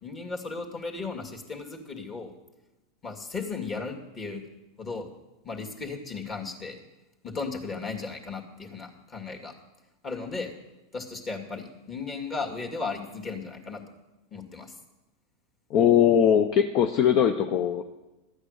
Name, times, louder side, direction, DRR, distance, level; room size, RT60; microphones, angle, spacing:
voice 1, 0.0-2.3 3.0-4.4 4.8-5.1 5.4-6.8 7.2-9.5 10.0-10.5 10.9-13.8 14.3-14.7, left 4 dB, 30° left, 2 dB, 2.2 m, -35 dB
voice 2, 15.7-17.8, left 9 dB, 50° left, 7 dB, 0.7 m, -21 dB
13.0 x 8.7 x 6.6 m, 1.1 s
hypercardioid pair, 105°, 0 cm